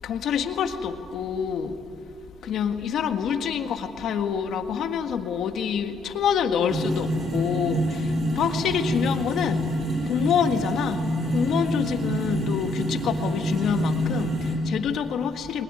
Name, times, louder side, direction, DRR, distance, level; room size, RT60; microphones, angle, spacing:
voice 1, 0.0-1.8 2.4-15.6, left 7 dB, 75° left, 7 dB, 1.7 m, -27 dB
sound 1, 6.7-14.5, equal, 50° right, 6.5 m, -27 dB
21.5 x 20.5 x 9.8 m, 2.4 s
cardioid pair, 90°, 0 cm